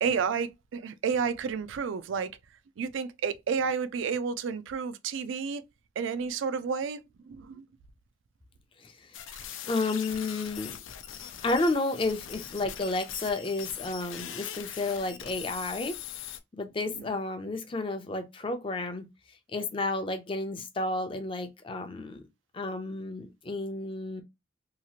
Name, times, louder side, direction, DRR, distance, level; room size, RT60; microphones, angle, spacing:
voice 1, 0.0-2.3 2.8-5.6 6.0-7.7 16.9-17.2, right 6 dB, 80° right, 0.4 m, -31 dB
voice 2, 8.8-9.2 9.6-10.8 11.4-15.9 16.5-19.1 19.5-22.2 22.5-24.2, left 2 dB, 25° left, 0.5 m, -31 dB
sound 1, 9.1-16.4, left 10 dB, 85° left, 0.4 m, -41 dB
2.8 x 2.4 x 2.8 m
head